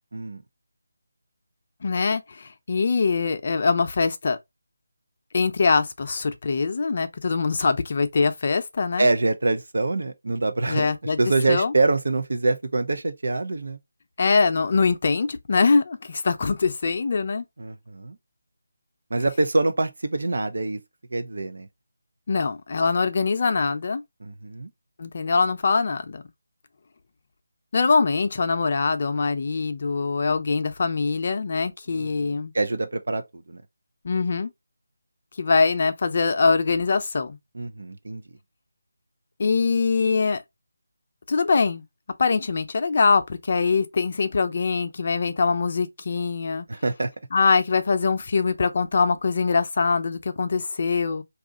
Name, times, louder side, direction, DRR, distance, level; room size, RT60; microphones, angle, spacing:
voice 1, 1.8-4.4 5.3-9.1 10.7-11.2 11.5-11.7 14.2-17.4 22.3-24.0 25.0-26.2 27.7-32.5 34.0-34.5 35.4-37.4 39.4-40.4 41.3-41.8 42.2-46.7 47.3-51.2, left 4 dB, 45° left, 0.6 m, -23 dB
voice 2, 9.0-13.8 17.6-18.2 19.1-20.8 21.1-21.7 22.8-22.9 24.2-24.7 31.9-33.6 37.5-38.2 46.7-47.1, right 2 dB, 70° right, 0.6 m, -25 dB
2.7 x 2.5 x 3.7 m
figure-of-eight pair, 160°, 0 cm